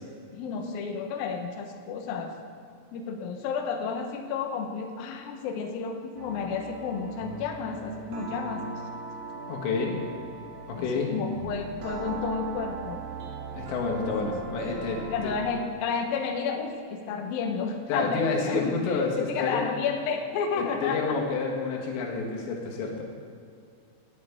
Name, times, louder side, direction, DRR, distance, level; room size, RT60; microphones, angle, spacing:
voice 1, 0.3-2.3 2.9-8.6 10.7-13.0 14.0-14.1 15.1-21.2, left 5 dB, 90° left, 4 dB, 2.0 m, -31 dB
sound 1, 6.1-15.6, right 5 dB, 70° right, 1.8 m, -39 dB
voice 2, 9.5-10.0 10.7-11.1 13.5-15.3 17.9-19.6 20.6-23.1, left 4 dB, 70° left, -1 dB, 3.7 m, -29 dB
18.0 x 9.4 x 3.6 m, 2.4 s
omnidirectional pair, 5.7 m